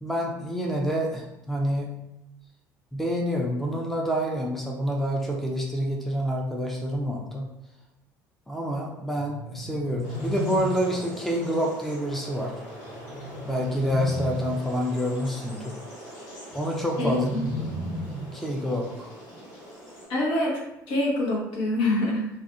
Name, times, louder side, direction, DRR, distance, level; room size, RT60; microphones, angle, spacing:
voice 1, 0.0-1.9 2.9-7.5 8.5-12.5 13.4-15.7 16.5-17.7 18.3-19.1, equal, ahead, -1 dB, 0.5 m, -28 dB
sound 1, 9.1-11.1 12.8-14.7 16.5-18.5, equal, 30° left, 1.0 m, -35 dB
sound 2, 10.0-20.1, equal, 75° left, 1.4 m, -43 dB
voice 2, 17.0-17.5 20.1-20.6 20.9-22.3, left 1 dB, 60° left, -2 dB, 0.8 m, -25 dB
2.4 x 2.3 x 2.5 m, 0.87 s
figure-of-eight pair, 60°, 10 cm